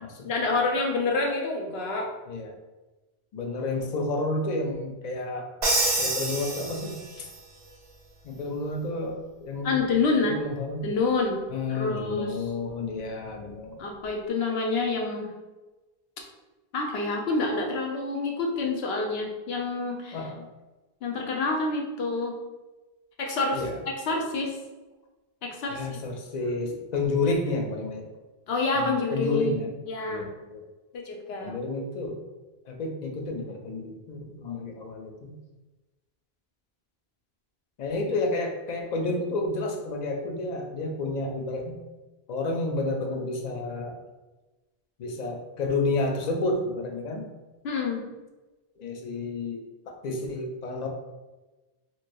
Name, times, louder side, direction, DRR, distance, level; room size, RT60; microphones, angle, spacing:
voice 1, 0.2-2.1 9.6-10.4 10.8-11.4 11.7-12.4 13.8-15.3 16.7-20.2 21.0-22.3 23.2-24.6 25.4-26.0 28.5-30.3 30.9-31.5 38.1-38.2 47.6-48.0, left 3 dB, 75° left, 1 dB, 0.9 m, -27 dB
voice 2, 3.3-5.5 6.0-7.3 8.2-9.8 10.2-10.8 11.5-13.8 20.1-20.5 23.5-23.8 25.7-28.1 28.7-29.7 30.1-30.6 31.4-32.2 32.7-35.3 37.8-41.8 42.3-44.0 45.0-47.3 48.8-49.6 49.9-50.9, left 2 dB, 55° left, 2 dB, 0.5 m, -30 dB
Crash cymbal, 5.6-7.3, right 2 dB, 40° right, 0.6 m, -27 dB
2.9 x 2.8 x 2.6 m, 1.1 s
omnidirectional pair, 1.0 m